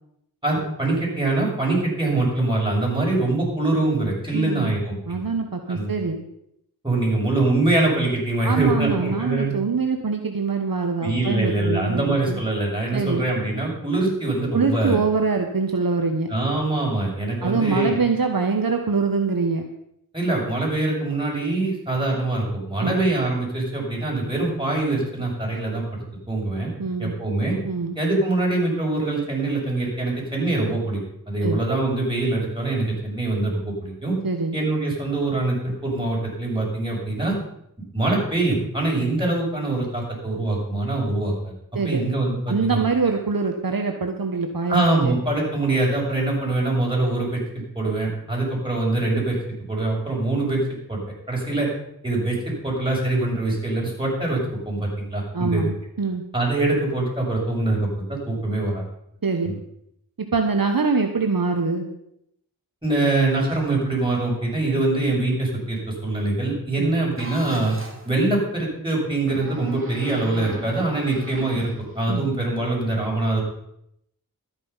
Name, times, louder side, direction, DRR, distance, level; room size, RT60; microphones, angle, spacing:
voice 1, 0.4-5.2 5.7-5.9 6.8-9.6 11.0-15.0 16.3-18.0 20.1-26.7 27.0-27.6 27.9-31.0 31.3-34.1 34.5-37.3 37.9-41.5 41.8-43.2 44.7-49.4 49.7-51.0 51.3-51.7 52.0-55.7 56.3-58.8 59.4-59.5 62.8-67.7 68.0-73.4, right 2 dB, 15° right, -3 dB, 6.6 m, -24 dB
voice 2, 4.3-4.7 5.1-6.2 8.4-12.4 12.9-13.3 14.5-16.3 17.4-19.6 22.8-23.0 26.8-27.1 27.6-28.0 31.4-31.6 34.2-34.6 41.7-42.0 42.5-45.1 55.3-56.2 59.2-59.5 60.2-61.9 66.8-66.9 72.1-72.2, right 4 dB, 65° right, 4 dB, 1.2 m, -24 dB
sound 1, 67.2-68.1 69.2-72.3, right 1 dB, 35° right, 2.8 m, -38 dB
13.0 x 9.7 x 5.6 m, 0.75 s
wide cardioid pair, 40°, 37 cm